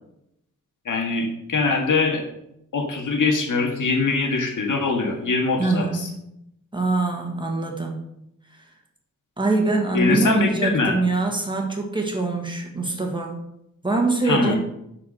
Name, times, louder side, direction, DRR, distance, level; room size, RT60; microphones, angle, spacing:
voice 1, 0.9-2.2 2.7-5.9 9.9-11.0 14.2-14.6, left 3 dB, 75° left, 2 dB, 2.0 m, -22 dB
voice 2, 5.6-6.3 6.7-8.0 8.5-8.7 9.4-13.4 13.8-14.6, right 3 dB, 15° right, 1 dB, 1.7 m, -24 dB
11.0 x 4.8 x 6.3 m, 0.79 s
wide cardioid pair, 175°, 31 cm